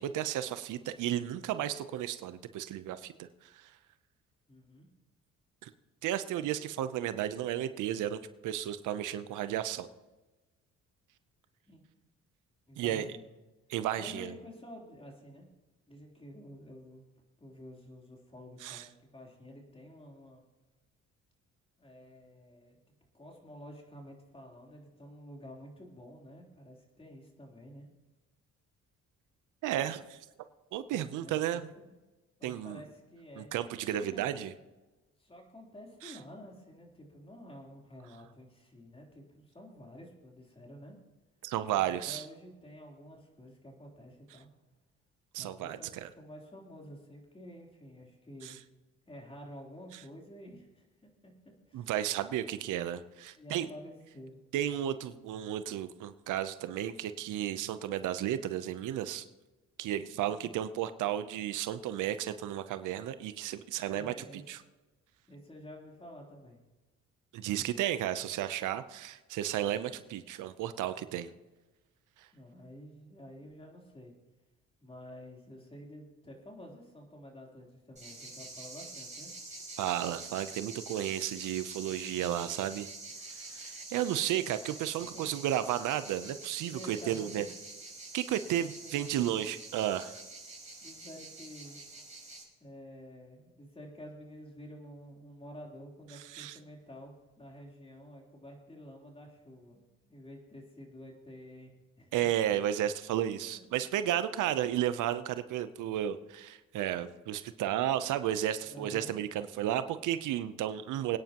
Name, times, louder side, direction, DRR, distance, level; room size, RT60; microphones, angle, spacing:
voice 1, 0.0-3.7 5.6-5.7 6.0-9.9 12.8-13.1 13.7-14.3 18.6-18.8 29.6-30.3 30.7-31.7 32.4-32.8 33.4-34.5 36.0-36.2 41.4-42.2 45.3-46.1 48.4-48.6 51.7-53.7 54.5-59.3 59.8-64.1 64.5-64.6 67.3-71.3 72.2-72.3 79.8-82.9 83.3-87.5 88.1-90.2 96.1-96.6 102.1-111.2, right 11 dB, 85° right, 12 dB, 0.8 m, -33 dB
voice 2, 4.5-4.9 11.7-11.8 12.7-13.3 13.9-15.5 15.9-17.1 17.4-20.4 21.8-22.8 23.1-27.9 30.9-31.9 32.4-33.6 33.9-34.4 35.2-41.0 41.8-44.5 45.4-48.6 49.1-50.8 51.2-51.3 51.7-51.9 52.6-52.9 53.4-54.4 60.1-60.6 63.8-64.4 65.3-66.6 72.3-74.1 74.8-79.3 85.0-85.3 86.7-87.5 88.5-89.4 90.8-91.8 92.6-99.8 100.1-101.7 102.0-102.1 108.6-109.1, equal, 20° left, -1 dB, 3.6 m, -50 dB
sound 1, 78.0-92.4, right 3 dB, 25° right, 5.6 m, -46 dB
25.0 x 9.6 x 3.0 m, 1.1 s
cardioid pair, 90°, 30 cm